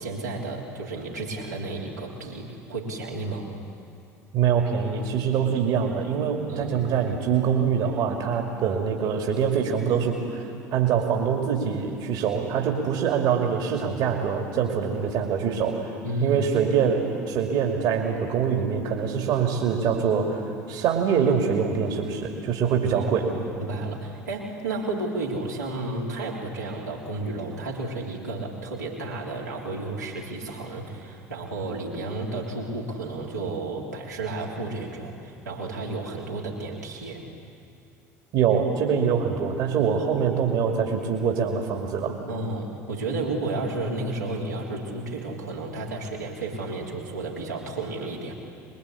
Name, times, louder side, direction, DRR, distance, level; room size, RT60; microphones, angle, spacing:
voice 1, 0.0-3.5 6.5-6.8 16.0-16.4 22.9-37.2 42.3-48.3, right 2 dB, 85° right, -4 dB, 3.5 m, -32 dB
voice 2, 4.3-15.9 16.2-23.3 38.3-42.2, right 7 dB, 50° right, 2 dB, 2.6 m, -24 dB
24.5 x 21.5 x 8.5 m, 2.5 s
figure-of-eight pair, 65°, 9 cm